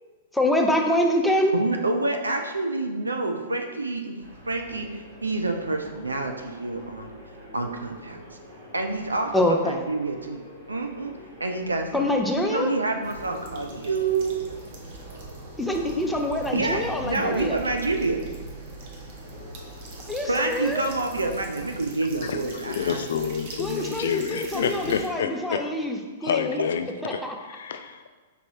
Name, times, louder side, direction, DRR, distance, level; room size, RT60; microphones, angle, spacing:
voice 1, 0.3-1.5 9.3-9.9 11.9-12.7 15.6-17.6 20.1-20.8 23.6-26.6 27.0-27.4, left 1 dB, 5° left, 2 dB, 0.5 m, -25 dB
voice 2, 1.5-4.2 4.5-7.1 7.5-8.2 8.7-9.3 9.6-11.1 11.4-14.4 16.5-18.2 20.3-23.0, right 3 dB, 85° right, 5 dB, 0.5 m, -28 dB
sound 1, 4.2-21.7, equal, 65° right, 1.4 m, -46 dB
sound 2, 13.0-25.1, right 2 dB, 45° right, 0.8 m, -41 dB
voice 3, 22.2-25.6 26.2-28.1, left 7 dB, 65° left, 8 dB, 0.3 m, -29 dB
5.1 x 3.2 x 2.9 m, 1.3 s
figure-of-eight pair, 105°, 0 cm